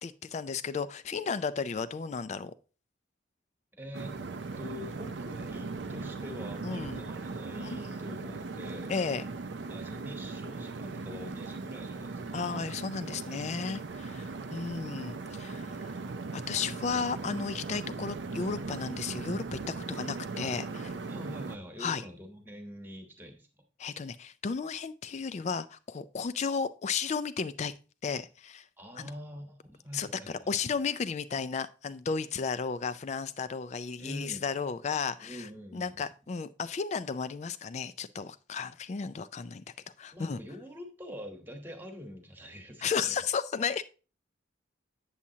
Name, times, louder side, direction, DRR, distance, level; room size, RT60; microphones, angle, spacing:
voice 1, 0.0-2.5 6.6-7.0 7.6-7.8 8.9-9.2 12.3-16.0 16.3-20.9 21.8-22.0 23.8-27.7 28.0-28.6 29.0-29.1 29.9-35.5 35.7-39.6 40.0-40.4 42.8-43.8, left 5 dB, 35° left, 14 dB, 0.3 m, -34 dB
voice 2, 3.7-4.2 4.6-8.9 9.7-12.4 14.0-14.3 21.1-23.5 28.8-30.5 34.0-34.4 35.2-36.1 40.1-43.1, equal, 10° right, 5 dB, 1.1 m, -45 dB
sound 1, 3.9-21.6, right 3 dB, 65° right, 0.5 m, -39 dB
8.4 x 7.3 x 2.8 m, 0.34 s
head